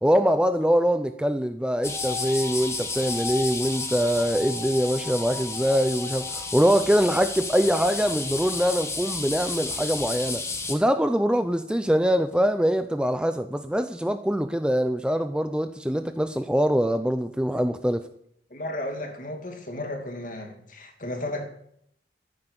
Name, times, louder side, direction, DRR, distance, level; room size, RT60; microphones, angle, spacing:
voice 1, 0.0-10.4 10.7-18.1, equal, 5° right, 0.5 m, -23 dB
sound 1, 1.8-10.8, left 3 dB, 15° left, 1.5 m, -32 dB
voice 2, 18.5-21.4, left 1 dB, 45° left, 2.7 m, -34 dB
14.0 x 10.0 x 6.9 m
head